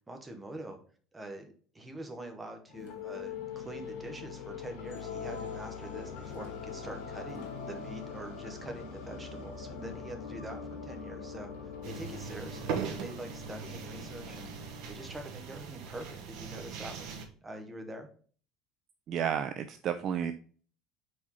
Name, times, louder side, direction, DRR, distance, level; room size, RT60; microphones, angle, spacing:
voice 1, 0.1-0.8 1.1-18.1, right 1 dB, 10° right, 5 dB, 1.0 m, -45 dB
sound 1, 2.7-15.6, left 6 dB, 80° left, 1.8 m, -43 dB
sound 2, 11.8-17.3, right 6 dB, 60° right, 1.1 m, -40 dB
voice 2, 19.1-20.3, right 8 dB, 35° right, 10 dB, 0.4 m, -31 dB
4.8 x 4.2 x 5.4 m, 0.44 s
cardioid pair, 170°, 0 cm